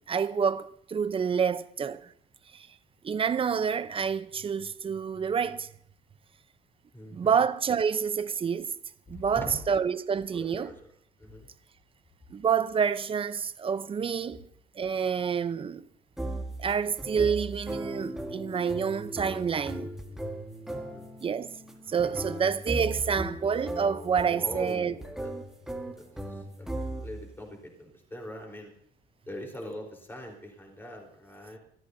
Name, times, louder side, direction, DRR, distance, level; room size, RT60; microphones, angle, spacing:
voice 1, 0.1-2.1 2.5-2.7 3.0-5.7 7.1-8.7 9.1-10.7 12.3-14.5 14.8-15.9 16.6-19.9 21.2-21.6 21.9-24.9, right 6 dB, 30° right, 0.8 m, -28 dB
voice 2, 6.9-7.4 9.1-9.7 10.3-10.9 11.2-11.5 20.7-21.1 21.9-22.7 24.3-25.3 25.9-26.7 27.0-28.7 29.3-31.6, left 1 dB, 15° left, 4.1 m, -42 dB
sound 1, 16.2-27.3, right 1 dB, 5° right, 1.6 m, -37 dB
24.0 x 14.0 x 2.8 m
cardioid pair, 110°, 17 cm